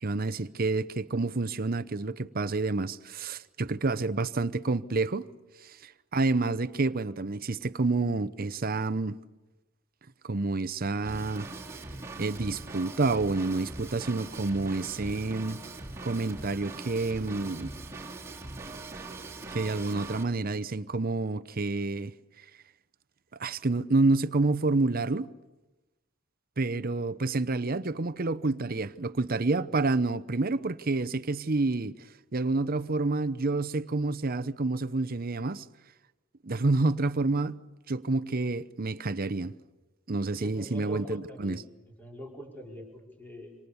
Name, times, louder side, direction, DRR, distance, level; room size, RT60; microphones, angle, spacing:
voice 1, 0.0-5.3 5.6-9.2 10.2-11.5 12.2-15.6 16.0-17.7 19.5-22.1 23.4-25.3 26.6-31.9 32.3-35.6 36.4-37.6 37.9-39.5 40.1-41.6, right 3 dB, 45° right, 0.8 m, -28 dB
Drum kit / Drum, 11.1-20.2, right 2 dB, 15° right, 3.2 m, -41 dB
voice 2, 40.3-41.6 42.0-43.6, right 1 dB, 10° left, 5.2 m, -43 dB
27.5 x 26.5 x 7.1 m
head